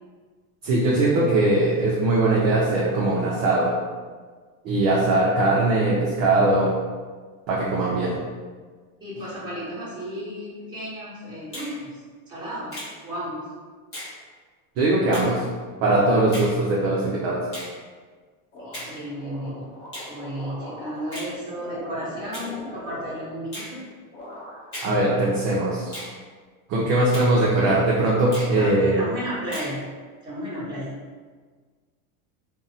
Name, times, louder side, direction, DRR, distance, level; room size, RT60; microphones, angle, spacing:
voice 1, 0.6-3.7 4.6-6.7 7.5-8.2 14.8-15.4 15.8-17.4 24.8-25.9 26.7-29.0, right 2 dB, 40° right, -5 dB, 0.4 m, -21 dB
voice 2, 9.0-12.8 13.0-13.5 18.6-19.7 20.1-23.9 28.3-29.9 30.2-31.0, equal, 10° right, -10 dB, 0.9 m, -33 dB
Finger snapping, 11.5-11.7 12.7-12.9 13.9-14.1 15.1-15.3 16.3-16.5 17.5-17.7 18.7-18.9 19.9-20.1 21.1-21.3 22.3-22.5 23.5-23.7 24.7-25.0 25.9-26.1 27.1-27.3 28.3-28.5 29.5-29.8, equal, 30° left, 1.0 m, -36 dB
sound 1, 18.5-23.8 24.1-24.8 25.2-26.0, left 1 dB, 90° left, 0.8 m, -41 dB
2.5 x 2.0 x 2.7 m, 1.5 s
supercardioid pair, 140°, 43 cm